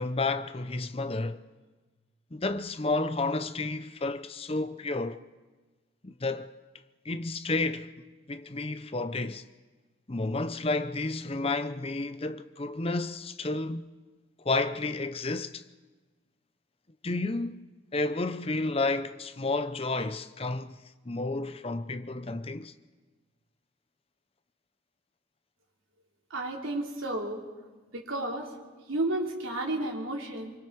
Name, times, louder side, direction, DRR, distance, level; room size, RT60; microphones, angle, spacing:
voice 1, 0.0-1.4 2.3-5.2 6.0-6.5 7.0-7.9 8.3-9.4 10.1-13.9 14.4-15.6 17.0-17.6 17.9-20.8 21.0-22.7, left 2 dB, 30° left, 0.7 m, -31 dB
voice 2, 26.3-27.4 27.9-28.5 28.9-30.6, right 1 dB, 80° right, 3.4 m, -32 dB
24.5 x 23.0 x 4.8 m
head